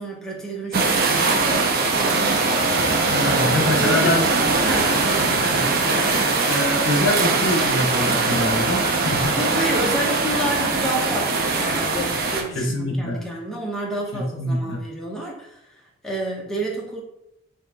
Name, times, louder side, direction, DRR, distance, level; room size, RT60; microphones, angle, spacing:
voice 1, 0.0-2.7 3.8-4.2 4.6-6.0 9.3-17.0, right 1 dB, ahead, -3 dB, 0.6 m, -30 dB
sound 1, 0.7-12.4, right 3 dB, 45° right, 0.6 m, -21 dB
voice 2, 3.0-4.3 5.5-5.6 6.5-9.4 12.5-13.2 14.1-14.8, left 1 dB, 60° left, 2 dB, 0.7 m, -24 dB
3.7 x 2.8 x 3.4 m, 0.81 s
head